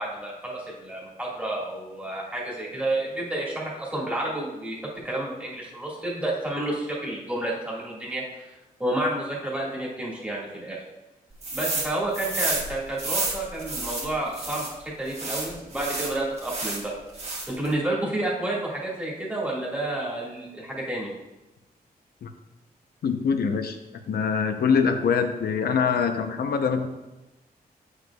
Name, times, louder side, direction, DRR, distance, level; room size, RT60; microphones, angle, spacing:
voice 1, 0.0-8.5 8.8-10.8 11.5-16.9 17.5-21.1, right 1 dB, 10° right, -5 dB, 1.8 m, -30 dB
sound 1, 11.4-11.9 12.1-14.7 15.1-16.8 17.1-17.7, right 3 dB, 40° right, 1.4 m, -30 dB
voice 2, 23.0-23.8 24.1-26.9, left 6 dB, 80° left, 7 dB, 0.7 m, -24 dB
9.1 x 6.5 x 2.3 m, 1.0 s
wide cardioid pair, 145°, 16 cm